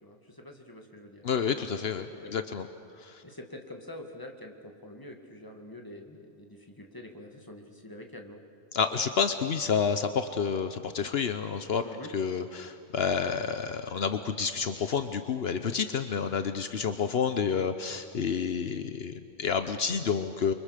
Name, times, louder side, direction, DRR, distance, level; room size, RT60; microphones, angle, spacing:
voice 1, 0.0-1.2 2.2-2.3 3.2-8.4 11.8-12.1, left 1 dB, 20° left, 3 dB, 2.2 m, -46 dB
voice 2, 1.2-2.7 3.0-3.2 8.7-11.8 12.1-20.5, left 6 dB, 70° left, 9 dB, 1.1 m, -29 dB
29.0 x 24.5 x 6.7 m, 2.6 s
omnidirectional pair, 1.1 m